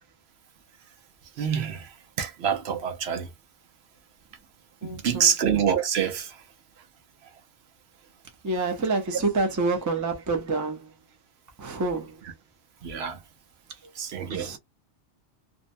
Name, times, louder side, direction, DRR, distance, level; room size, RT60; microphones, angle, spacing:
voice 1, 1.4-3.3 4.8-6.4 12.8-13.2 13.9-14.5, right 7 dB, 70° right, 0.8 m, -26 dB
voice 2, 4.8-5.3 8.4-10.9 11.6-12.2 14.3-14.6, right 3 dB, 20° right, 0.6 m, -27 dB
2.7 x 2.1 x 2.5 m
omnidirectional pair, 1.1 m